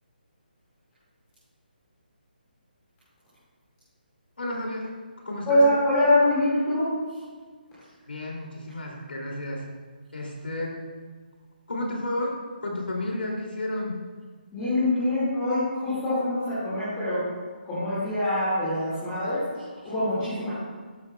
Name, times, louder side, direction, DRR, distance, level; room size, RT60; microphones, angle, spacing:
voice 1, 4.4-4.9 5.2-5.6 8.1-9.7 10.1-10.8 11.7-14.0, left 1 dB, 90° left, -1 dB, 2.6 m, -32 dB
voice 2, 5.5-6.9 14.5-17.2 17.6-20.5, left 1 dB, 10° left, -13 dB, 2.0 m, -24 dB
13.0 x 7.9 x 2.3 m, 1.5 s
hypercardioid pair, 180°, 5 cm